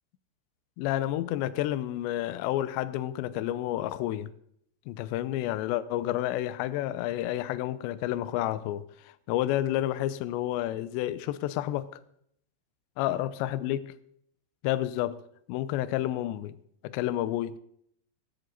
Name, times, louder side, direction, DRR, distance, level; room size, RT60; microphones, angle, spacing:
voice 1, 0.8-4.3 4.9-12.0 13.0-13.8 14.6-15.2 15.5-16.6 16.8-17.6, left 13 dB, 90° left, 2.5 m, -30 dB
16.5 x 14.0 x 4.0 m
omnidirectional pair, 6.0 m